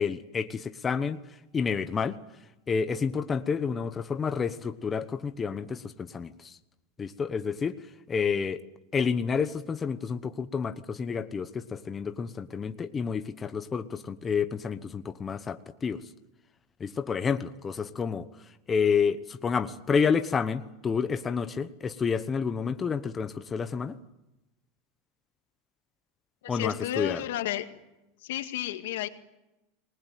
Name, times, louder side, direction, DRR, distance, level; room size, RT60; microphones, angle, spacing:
voice 1, 0.0-2.2 2.7-6.6 7.0-7.8 8.1-8.6 8.9-16.1 16.8-18.3 18.7-23.9 26.5-27.2, left 6 dB, 20° left, 10 dB, 1.0 m, -29 dB
voice 2, 26.4-27.7 28.2-29.1, left 13 dB, 80° left, 7 dB, 2.1 m, -32 dB
27.0 x 20.0 x 9.3 m, 0.97 s
supercardioid pair, 140°, 0 cm